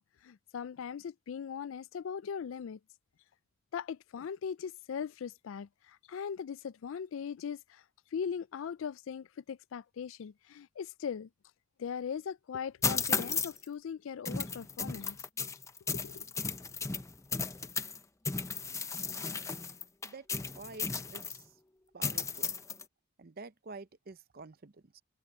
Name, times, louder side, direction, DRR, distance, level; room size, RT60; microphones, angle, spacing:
voice 1, 0.0-2.8 3.7-7.8 8.1-11.3 11.8-15.2 15.9-16.2, left 7 dB, 75° left, 0.4 m, -39 dB
sound 1, 12.8-13.6 14.2-18.0 18.2-21.4 22.0-22.8, left 5 dB, 15° left, 0.7 m, -35 dB
voice 2, 20.5-21.4 21.9-22.5 23.2-25.0, right 3 dB, 50° right, 0.7 m, -48 dB
head